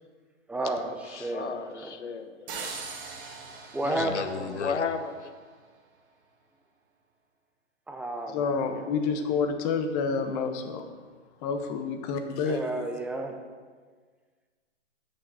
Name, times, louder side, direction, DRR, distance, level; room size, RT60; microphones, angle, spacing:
voice 1, 0.5-1.9 3.7-4.6 7.9-8.9 12.4-13.4, right 1 dB, 5° right, 3 dB, 0.6 m, -32 dB
voice 2, 1.1-2.8 3.2-3.4 3.8-5.3, left 5 dB, 70° left, 8 dB, 1.1 m, -34 dB
sound 1, 2.5-5.3, right 4 dB, 45° right, 2.0 m, -41 dB
voice 3, 8.3-10.9 11.4-12.6, left 5 dB, 30° left, 6 dB, 1.1 m, -28 dB
8.3 x 6.6 x 7.7 m, 1.5 s
figure-of-eight pair, 120°, 36 cm